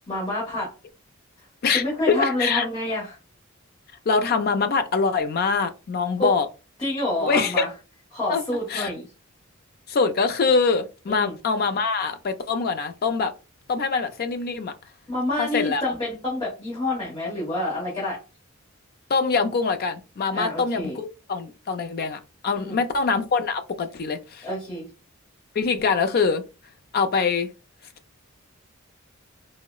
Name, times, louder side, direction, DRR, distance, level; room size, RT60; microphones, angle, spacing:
voice 1, 0.1-0.7 1.7-3.2 6.2-6.3 6.8-7.7 8.1-9.0 11.1-11.3 15.1-18.2 20.3-21.0 22.5-22.8 24.4-24.9, left 1 dB, 20° left, 1.2 m, -28 dB
voice 2, 1.6-2.7 4.1-6.5 7.2-7.7 8.3-8.4 8.7-8.9 9.9-13.3 13.7-14.7 15.4-15.8 19.1-24.5 25.5-26.4 26.9-27.5, left 4 dB, 50° left, 0.4 m, -24 dB
3.8 x 2.0 x 2.3 m
head